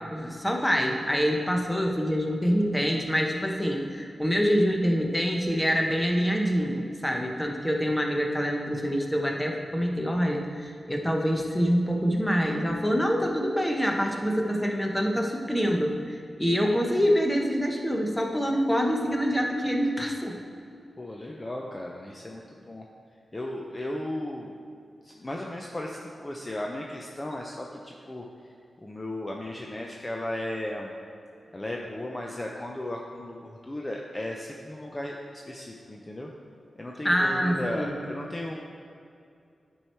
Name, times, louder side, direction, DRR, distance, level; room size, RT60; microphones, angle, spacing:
voice 1, 0.1-20.4 37.0-38.0, equal, 10° left, 1 dB, 0.9 m, -26 dB
voice 2, 21.0-22.8 23.3-24.5 25.0-28.2 28.8-30.9 31.5-36.3 36.8-38.5, left 1 dB, 25° left, 0 dB, 0.6 m, -35 dB
9.8 x 4.7 x 4.4 m, 2.5 s
wide cardioid pair, 85°, 0 cm